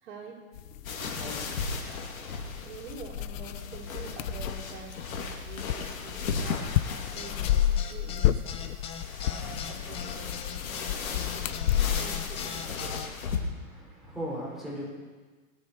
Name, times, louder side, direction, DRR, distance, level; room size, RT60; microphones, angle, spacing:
voice 1, 0.0-1.1 2.6-10.7 11.0-11.3 12.0-13.1, right 4 dB, 55° right, -3 dB, 4.3 m, -46 dB
sound 1, 0.5-13.0, left 12 dB, 70° left, 0.7 m, -32 dB
sound 2, 0.8-13.4, left 5 dB, 85° left, 2.4 m, -36 dB
sound 3, 7.2-13.1, left 7 dB, 15° left, 0.6 m, -40 dB
voice 2, 13.1-14.9, equal, ahead, -7 dB, 5.2 m, -39 dB
20.0 x 10.0 x 4.7 m, 1.3 s
hypercardioid pair, 150°, 41 cm